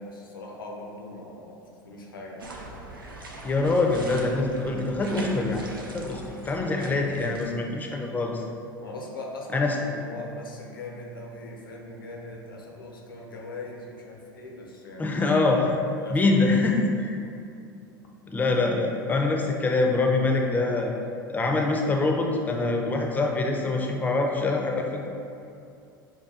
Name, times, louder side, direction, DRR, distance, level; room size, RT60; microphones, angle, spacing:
voice 1, 0.0-2.7 8.8-15.2 16.0-16.2, left 2 dB, 80° left, -1 dB, 0.5 m, -40 dB
sound 1, 2.4-7.5, right 1 dB, 85° right, 0.5 m, -40 dB
voice 2, 3.4-5.7 5.9-8.4 9.5-9.8 15.0-15.8 16.1-17.2 18.3-20.9 21.3-25.1, left 3 dB, 15° left, 1 dB, 0.4 m, -24 dB
5.5 x 2.3 x 2.3 m, 2.5 s
figure-of-eight pair, 80°, 11 cm